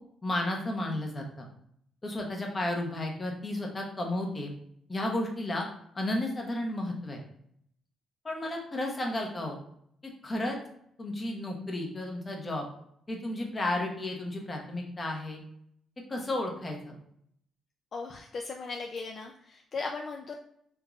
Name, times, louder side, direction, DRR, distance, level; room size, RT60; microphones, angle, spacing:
voice 1, 0.2-1.5 2.0-4.5 4.9-5.7 5.9-7.2 8.2-9.6 10.2-10.6 11.0-12.7 13.1-15.4 16.1-17.0, left 1 dB, 25° left, 1 dB, 0.8 m, -33 dB
voice 2, 17.9-20.4, left 4 dB, 50° left, 2 dB, 0.3 m, -37 dB
3.5 x 3.0 x 2.4 m, 0.69 s
cardioid pair, 90°, 0 cm